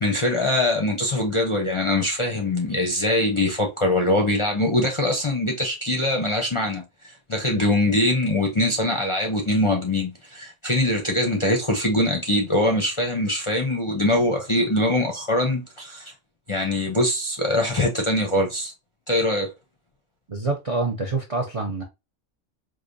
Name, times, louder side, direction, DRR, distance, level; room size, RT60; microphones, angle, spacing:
voice 1, 0.0-16.1 16.5-18.7 19.1-19.5, left 1 dB, 35° left, 0.5 m, -23 dB
voice 2, 20.3-21.8, right 3 dB, 45° right, 0.4 m, -26 dB
4.7 x 2.4 x 2.5 m
omnidirectional pair, 1.3 m